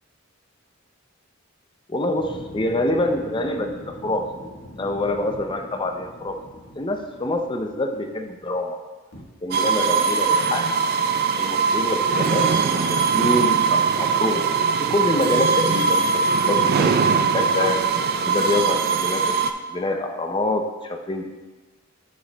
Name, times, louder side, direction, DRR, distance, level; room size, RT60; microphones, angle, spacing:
voice 1, 1.9-4.2 4.8-6.4 6.8-8.8 9.4-10.7 11.4-14.5 14.8-17.8 18.2-19.4 19.7-21.2, left 2 dB, 20° left, 5 dB, 0.5 m, -26 dB
sound 1, 2.1-8.6 9.1-9.2, equal, 75° left, 1.4 m, -42 dB
sound 2, 9.5-19.5, right 5 dB, 45° right, 0.3 m, -21 dB
9.6 x 6.4 x 2.2 m, 1.3 s
head